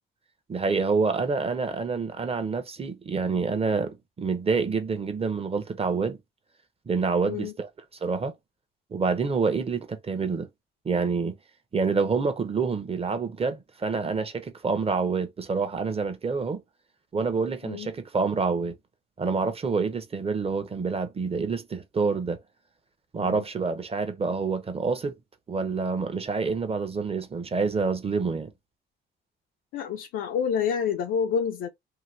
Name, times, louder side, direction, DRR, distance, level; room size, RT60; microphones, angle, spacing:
voice 1, 0.5-6.2 6.9-7.7 8.0-8.3 8.9-10.5 10.8-11.4 11.7-16.6 17.1-18.7 19.2-22.4 23.1-25.2 25.5-28.5, right 4 dB, 30° right, 0.7 m, -27 dB
voice 2, 29.7-31.7, left 7 dB, 85° left, 0.5 m, -28 dB
2.8 x 2.2 x 3.1 m
cardioid pair, 90°, 20 cm